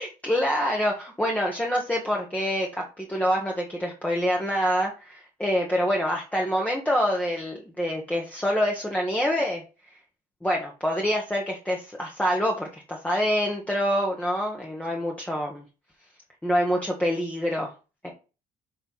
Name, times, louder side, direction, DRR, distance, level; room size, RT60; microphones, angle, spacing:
voice 1, 0.0-9.6 9.9-10.0 10.4-15.6 16.4-17.7 18.0-18.1, equal, 10° left, -1 dB, 1.2 m, -26 dB
6.9 x 3.4 x 4.1 m, 0.32 s
cardioid pair, 110°, 17 cm